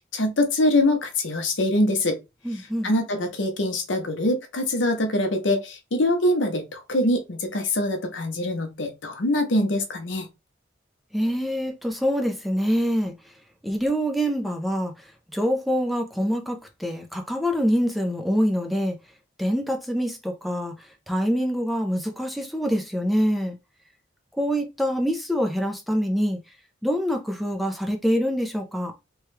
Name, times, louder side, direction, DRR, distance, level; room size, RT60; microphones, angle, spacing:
voice 1, 0.1-2.2 2.8-10.3, left 1 dB, 85° left, 0.8 m, -24 dB
voice 2, 2.4-2.9 11.1-13.1 13.6-19.0 19.4-23.6 24.4-26.4 26.8-28.9, equal, ahead, 0.5 m, -25 dB
3.0 x 2.3 x 3.2 m
head